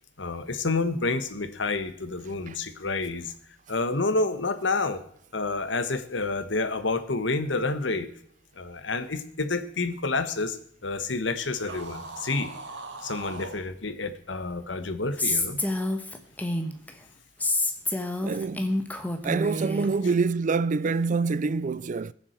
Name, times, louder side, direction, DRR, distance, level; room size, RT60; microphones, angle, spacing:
voice 1, 0.2-3.3 3.7-5.0 5.3-8.1 8.6-10.6 10.8-12.5 13.0-15.6, left 3 dB, 80° left, 1.3 m, -29 dB
sound 1, 11.5-13.6, right 3 dB, 70° right, 2.2 m, -40 dB
Female speech woman speaking, 15.2-16.9 17.4-19.9, left 1 dB, 10° left, 1.3 m, -28 dB
voice 2, 18.2-18.8 19.2-22.1, right 4 dB, 45° right, 0.4 m, -26 dB
21.0 x 7.4 x 4.5 m
head